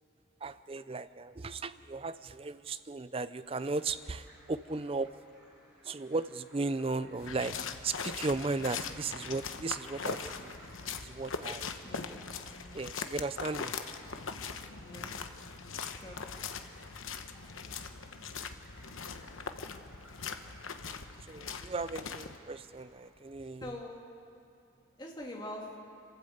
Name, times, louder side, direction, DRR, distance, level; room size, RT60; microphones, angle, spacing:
voice 1, 0.4-5.1 5.8-7.5 7.8-10.5 11.0-11.7 12.7-13.8 21.3-23.8, right 3 dB, 25° right, 14 dB, 0.5 m, -36 dB
sound 1, 3.5-23.1, equal, 5° right, 5.3 m, -60 dB
sound 2, 7.2-22.4, left 5 dB, 75° left, 1.0 m, -41 dB
voice 2, 11.8-12.2 14.8-15.1 15.9-16.2 23.6-24.0 25.0-25.8, left 1 dB, 20° left, -1 dB, 2.4 m, -43 dB
27.0 x 13.0 x 8.0 m, 2.5 s
head